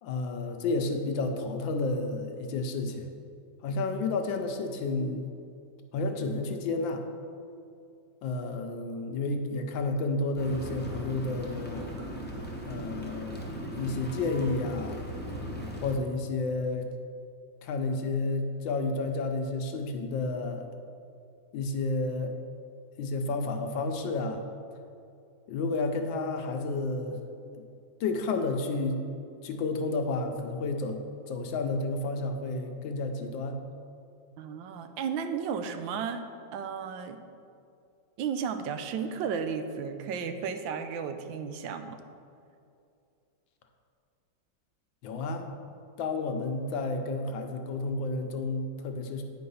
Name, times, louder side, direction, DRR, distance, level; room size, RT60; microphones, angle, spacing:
voice 1, 0.0-3.1 3.6-5.3 5.9-7.0 8.2-11.9 12.6-15.0 15.8-16.8 17.6-20.7 21.5-22.3 23.0-24.4 25.5-27.2 27.4-27.6 28.0-29.0 29.4-33.6 45.0-45.5 46.0-49.2, left 3 dB, 80° left, 5 dB, 1.5 m, -31 dB
sound 1, 10.4-16.0, equal, 10° left, 0.5 m, -38 dB
voice 2, 34.4-36.2 36.5-37.2 38.2-42.0, right 6 dB, 85° right, 8 dB, 1.3 m, -33 dB
9.1 x 4.7 x 5.4 m, 2.5 s
omnidirectional pair, 2.0 m